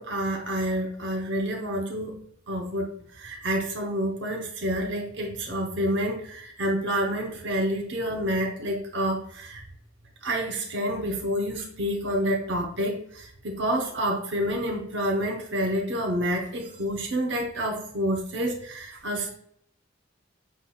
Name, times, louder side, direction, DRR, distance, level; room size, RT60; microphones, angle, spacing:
voice 1, 0.0-2.2 2.5-2.9 3.2-9.6 10.2-19.3, equal, 65° right, 1 dB, 0.8 m, -28 dB
5.9 x 3.8 x 2.2 m, 0.63 s
head